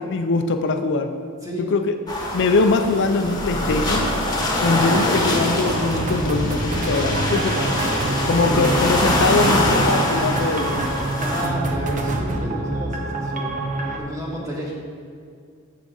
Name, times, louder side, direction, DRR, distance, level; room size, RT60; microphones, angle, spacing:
voice 1, 0.1-1.1 1.6-1.9 2.3-4.1 4.6-7.7 8.3-10.9, left 3 dB, 55° left, 6 dB, 0.5 m, -22 dB
sound 1, 2.1-11.4, left 1 dB, 15° left, 1.2 m, -24 dB
sound 2, 3.2-5.1, equal, 90° right, 2.3 m, -34 dB
sound 3, 5.6-14.0, right 2 dB, 35° right, 0.8 m, -26 dB
voice 2, 8.4-8.8 11.2-13.6 14.0-14.7, equal, 15° right, -4 dB, 1.8 m, -31 dB
13.5 x 4.7 x 3.9 m, 2.3 s
head